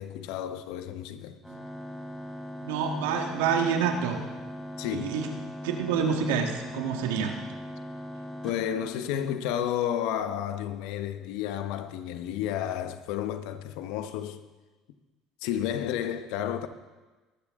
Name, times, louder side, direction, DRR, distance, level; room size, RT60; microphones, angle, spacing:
voice 1, 0.0-1.4 4.8-5.1 8.4-14.4 15.4-16.7, left 10 dB, 75° left, 1.1 m, -31 dB
sound 1, 1.4-9.5, equal, ahead, 6.1 m, -40 dB
voice 2, 2.6-4.2 4.9-7.4, right 6 dB, 85° right, 1.8 m, -28 dB
22.0 x 12.0 x 3.8 m
supercardioid pair, 80°, 0 cm